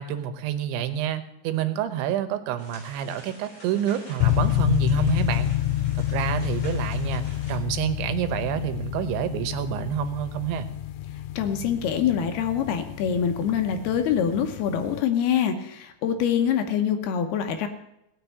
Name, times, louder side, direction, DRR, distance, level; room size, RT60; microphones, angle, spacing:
voice 1, 0.0-5.5 6.0-10.7, right 10 dB, 90° right, 11 dB, 3.4 m, -28 dB
sound 1, 2.6-7.6, left 1 dB, 30° left, 5.5 m, -47 dB
sound 2, 4.2-15.0, left 14 dB, 85° left, 3.0 m, -28 dB
voice 2, 11.4-17.7, left 8 dB, 70° left, 7 dB, 2.7 m, -25 dB
17.5 x 6.6 x 9.3 m, 0.84 s
omnidirectional pair, 5.2 m